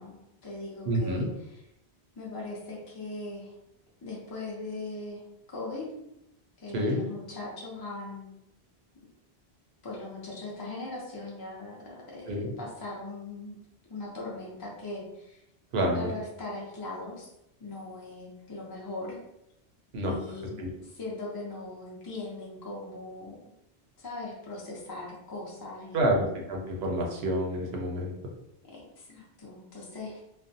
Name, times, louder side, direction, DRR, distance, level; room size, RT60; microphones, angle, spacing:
voice 1, 0.0-1.6 2.1-3.5 4.0-5.2 5.5-6.0 6.6-8.3 9.8-13.6 13.9-15.4 15.9-17.3 17.6-19.2 20.1-23.4 24.0-26.3 28.7-30.2, left 2 dB, 30° left, -4 dB, 0.5 m, -40 dB
voice 2, 0.9-1.3 6.7-7.0 12.3-12.5 15.7-16.1 19.9-20.1 20.6-20.7 25.9-28.1, right 1 dB, 75° right, 1 dB, 0.8 m, -28 dB
2.4 x 2.1 x 2.6 m, 0.82 s
omnidirectional pair, 1.1 m